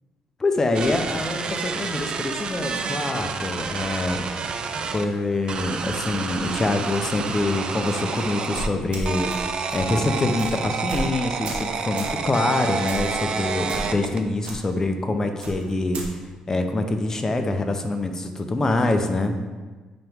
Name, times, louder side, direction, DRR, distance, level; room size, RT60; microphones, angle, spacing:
voice 1, 0.4-4.3 4.9-9.3 9.7-16.2 16.5-19.4, left 2 dB, 25° left, 6 dB, 0.6 m, -25 dB
sound 1, 0.7-5.1 5.5-8.7 9.1-14.2, right 5 dB, 45° right, 0.4 m, -29 dB
sound 2, 8.5-9.4 9.7-9.9 10.4-10.5 10.9-11.1 11.4-11.7 12.0-12.2 12.9-13.2 13.7-14.1 14.4-14.6 15.4-16.1, right 1 dB, 65° right, 1.2 m, -32 dB
8.9 x 3.0 x 3.5 m, 1.3 s
cardioid pair, 105°, 2 cm